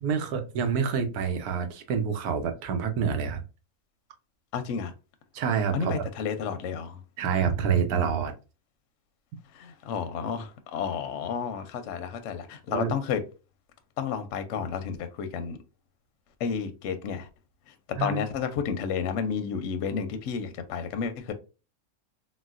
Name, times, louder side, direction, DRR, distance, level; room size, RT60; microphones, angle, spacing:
voice 1, 0.0-3.4 5.3-6.0 7.2-8.3 12.7-12.9 18.0-18.2, right 6 dB, 85° right, 1.2 m, -27 dB
voice 2, 4.5-4.9 5.7-7.0 9.5-13.2 14.0-15.6 16.4-17.3 17.7-21.3, left 6 dB, 65° left, 0.8 m, -31 dB
3.9 x 2.2 x 2.4 m
omnidirectional pair, 1.6 m